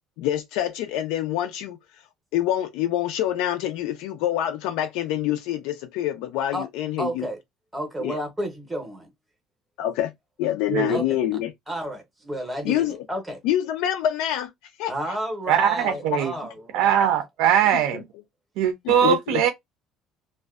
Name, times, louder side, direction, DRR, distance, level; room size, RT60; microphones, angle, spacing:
voice 1, 0.2-1.8 2.3-7.3 8.0-8.2 9.8-10.1 10.4-11.5 12.6-13.0 13.4-14.5 14.8-15.2 17.7-18.0 18.8-19.4, left 12 dB, 85° left, 0.3 m, -26 dB
voice 2, 7.0-7.4 7.7-9.1 10.9-11.0 11.7-13.4 14.9-17.1, right 1 dB, 5° right, 0.7 m, -31 dB
voice 3, 10.7-11.0 15.5-16.3 16.7-18.0 18.6-19.5, right 9 dB, 75° right, 0.5 m, -21 dB
2.5 x 2.1 x 2.3 m
cardioid pair, 175°, 0 cm